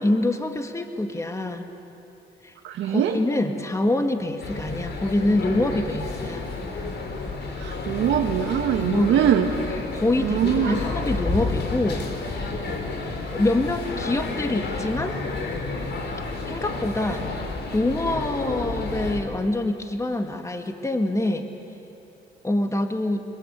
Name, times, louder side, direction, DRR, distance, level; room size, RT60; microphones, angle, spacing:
voice 1, 0.0-1.7 2.4-2.5 2.9-6.5 8.8-9.3 9.9-12.0 13.3-15.2 16.5-17.2 17.7-21.4 22.4-23.2, left 1 dB, 15° left, 5 dB, 1.9 m, -25 dB
voice 2, 2.6-3.2 7.6-9.5 10.2-10.8, right 9 dB, 80° right, 1 dB, 1.7 m, -22 dB
sound 1, 4.4-19.2, left 3 dB, 60° left, 4.4 m, -30 dB
29.5 x 22.5 x 8.2 m, 2.8 s
cardioid pair, 90°, 20 cm